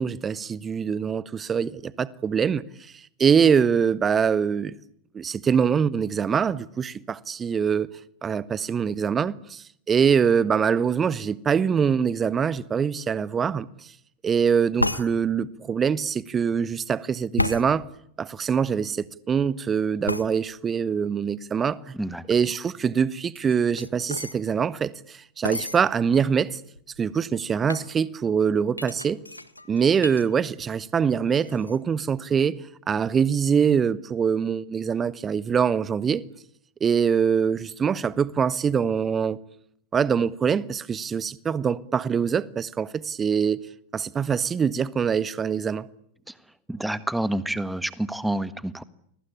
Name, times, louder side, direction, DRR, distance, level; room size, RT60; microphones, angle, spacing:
voice 1, 0.0-2.6 3.2-4.7 5.1-7.9 8.2-13.7 14.2-17.8 18.2-21.8 22.3-24.9 25.4-26.6 27.0-29.2 29.7-32.6 32.9-36.2 36.8-39.4 39.9-43.7 43.9-45.9, right 7 dB, 20° right, 1.1 m, -24 dB
sound 1, 14.8-15.1 17.4-17.7 20.1-20.3 23.4-24.4 25.4-25.8 26.5-26.6 26.8-27.1 27.7-27.9 28.8-30.2 30.6-31.0 31.3-31.8, left 1 dB, 85° left, 1.5 m, -30 dB
voice 2, 46.7-48.8, right 1 dB, 5° right, 1.5 m, -28 dB
30.0 x 22.5 x 8.8 m
figure-of-eight pair, 90°, 0 cm